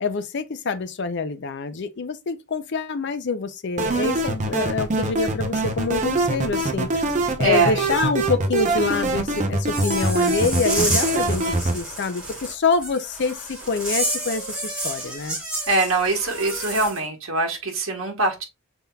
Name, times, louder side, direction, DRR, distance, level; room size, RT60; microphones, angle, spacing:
voice 1, 0.0-7.1 7.4-15.4, left 4 dB, 55° left, 0.5 m, -26 dB
sound 1, 3.8-11.8, right 2 dB, 35° right, 0.6 m, -23 dB
voice 2, 7.4-7.8 15.7-18.4, right 3 dB, 70° right, 1.2 m, -23 dB
sound 2, 9.7-17.0, right 1 dB, 5° right, 2.4 m, -30 dB
5.5 x 3.6 x 2.2 m
head